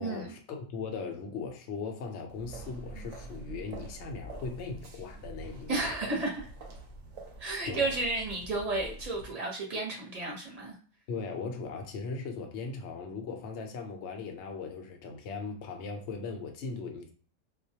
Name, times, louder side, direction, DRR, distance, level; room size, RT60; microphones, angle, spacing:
voice 1, 0.0-5.9 7.7-7.9 11.1-17.1, left 4 dB, 65° left, 0.7 m, -38 dB
sound 1, 2.3-9.3, right 2 dB, 65° right, 0.8 m, -45 dB
voice 2, 5.7-6.5 7.4-10.7, right 2 dB, 35° right, 0.7 m, -32 dB
2.4 x 2.1 x 2.7 m
omnidirectional pair, 1.6 m